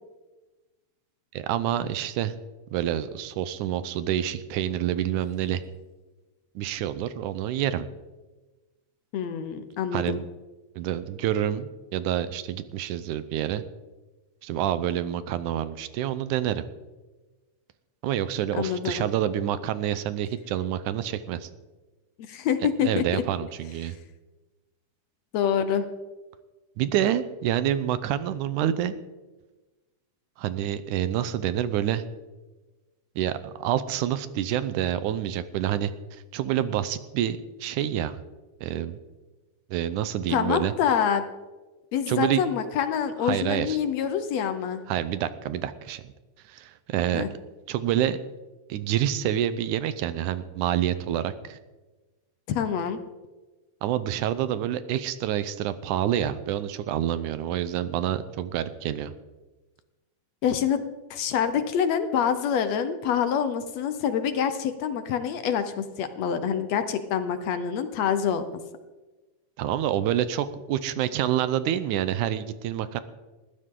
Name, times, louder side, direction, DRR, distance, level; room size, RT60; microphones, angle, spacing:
voice 1, 1.3-2.4 2.7-5.6 6.6-7.9 9.9-10.2 10.8-13.6 14.4-16.7 18.0-21.5 22.8-24.0 26.8-28.9 30.4-32.0 33.2-38.2 38.6-39.0 39.7-40.7 42.1-42.4 43.2-43.8 44.9-46.0 46.5-47.3 47.7-48.2 48.7-51.6 53.8-59.1 69.6-73.0, right 11 dB, 80° right, 13 dB, 2.2 m, -27 dB
voice 2, 9.1-10.2 18.6-19.1 22.3-23.2 25.3-25.9 40.3-41.3 41.9-44.8 47.1-47.3 52.5-53.0 60.4-60.8 61.1-68.4, left 8 dB, 70° left, 10 dB, 1.9 m, -26 dB
20.0 x 14.5 x 3.8 m, 1.2 s
omnidirectional pair, 3.5 m